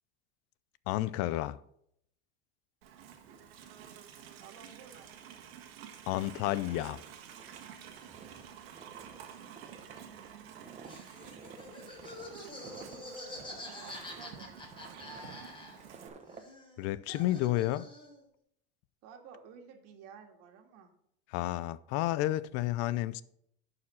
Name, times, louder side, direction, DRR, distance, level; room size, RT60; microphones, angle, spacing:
voice 1, 0.9-1.6 6.1-7.0 16.8-17.9 21.3-23.2, left 15 dB, 55° left, 0.5 m, -31 dB
Livestock farm animals working animals, 2.8-16.1, right 8 dB, 85° right, 1.7 m, -51 dB
voice 2, 4.4-5.2 9.7-10.7 13.8-14.6 19.0-20.9 21.6-21.8, right 6 dB, 55° right, 2.0 m, -54 dB
Walk footsteps, 6.5-16.5, right 5 dB, 25° right, 1.1 m, -53 dB
Laughter, 10.8-16.0 16.3-18.2, left 1 dB, 15° left, 4.2 m, -47 dB
11.0 x 4.9 x 5.6 m
supercardioid pair, 120°, 30 cm